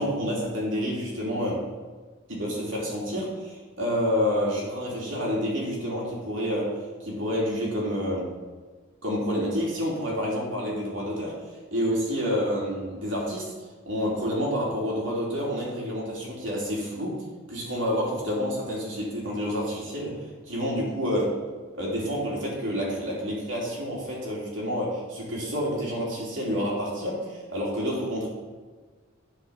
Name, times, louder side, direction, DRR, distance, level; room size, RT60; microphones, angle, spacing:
voice 1, 0.0-1.7 2.3-6.8 7.0-8.3 9.0-11.4 11.7-13.5 13.8-17.2 17.5-21.4 21.7-28.3, equal, 65° right, -4 dB, 3.1 m, -28 dB
10.5 x 5.0 x 5.8 m, 1.4 s
head